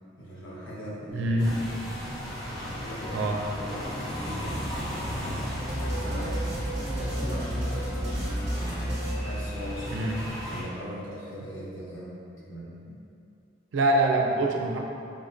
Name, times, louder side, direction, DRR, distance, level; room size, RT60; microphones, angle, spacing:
voice 1, 0.2-1.4 2.4-8.3 8.7-10.1 10.5-12.8, equal, 80° left, -7 dB, 0.9 m, -40 dB
voice 2, 1.1-1.6 3.1-3.4 9.9-10.2 12.9-13.0 13.7-14.8, right 2 dB, 80° right, 1 dB, 0.4 m, -25 dB
sound 1, 1.4-10.6, equal, 20° left, 0.6 m, -36 dB
sound 2, 5.7-10.0, equal, 15° right, 0.7 m, -31 dB
5.0 x 2.1 x 2.5 m, 2.5 s
head